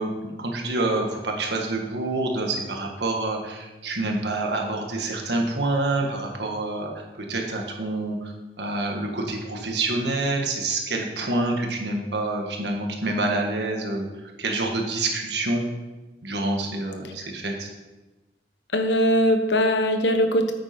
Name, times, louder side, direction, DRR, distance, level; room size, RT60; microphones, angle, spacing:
voice 1, 0.0-6.9 7.3-8.3 8.6-14.1 14.4-15.6 16.2-17.7, right 2 dB, 70° right, 2 dB, 1.7 m, -27 dB
voice 2, 18.7-20.5, equal, 80° left, 6 dB, 1.2 m, -21 dB
9.1 x 8.6 x 4.5 m, 1.1 s
head